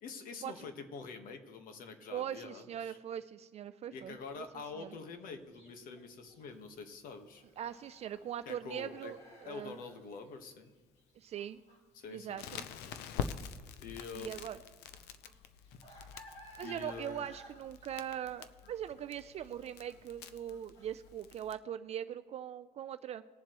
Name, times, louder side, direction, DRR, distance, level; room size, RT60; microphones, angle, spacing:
voice 1, 0.0-3.0 3.9-7.4 8.5-9.1 9.4-10.7 11.9-12.4 13.8-14.3 16.6-17.2, left 5 dB, 55° left, 7 dB, 1.3 m, -46 dB
voice 2, 2.1-4.4 4.8-5.0 7.6-9.8 11.2-11.6 12.1-12.7 14.2-14.6 16.6-23.2, right 10 dB, 40° right, 11 dB, 0.4 m, -41 dB
sound 1, 4.0-21.1, equal, 40° left, 2.6 m, -59 dB
Crackle, 12.4-21.5, left 7 dB, 80° left, 0.6 m, -46 dB
20.0 x 7.4 x 3.0 m, 1.4 s
cardioid pair, 155°, 17 cm